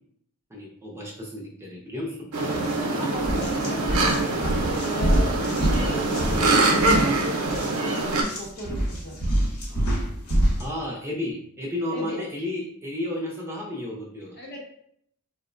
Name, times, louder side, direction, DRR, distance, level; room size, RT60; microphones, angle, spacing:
voice 1, 0.5-2.3 10.6-14.4, left 1 dB, 10° right, -3 dB, 0.5 m, -32 dB
sound 1, 2.3-8.2, right 2 dB, 80° right, 0.6 m, -24 dB
sound 2, 2.5-2.8 3.2-10.7, right 1 dB, 85° left, 1.0 m, -26 dB
voice 2, 2.9-7.2 7.5-7.7 8.4-9.2 11.9-12.3 14.4-14.6, equal, 45° left, -1 dB, 0.7 m, -36 dB
4.4 x 2.0 x 2.4 m, 0.69 s
head